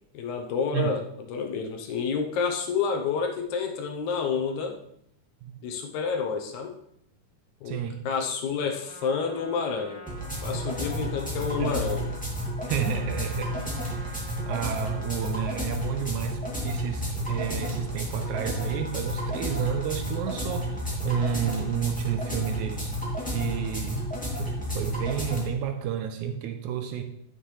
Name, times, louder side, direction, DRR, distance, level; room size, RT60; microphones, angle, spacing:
voice 1, 0.1-1.0 1.3-4.8 5.6-6.7 7.6-7.8 8.1-10.1 10.4-12.1, left 5 dB, 70° left, 2.1 m, -29 dB
voice 2, 7.7-8.0 11.6-11.9 12.7-22.9 23.3-24.1 24.4-27.0, right 9 dB, 80° right, 1.9 m, -31 dB
Trumpet, 8.7-15.5, equal, 50° left, 3.2 m, -48 dB
sound 1, 10.1-25.4, equal, 5° left, 2.0 m, -31 dB
9.6 x 7.5 x 3.2 m
omnidirectional pair, 3.7 m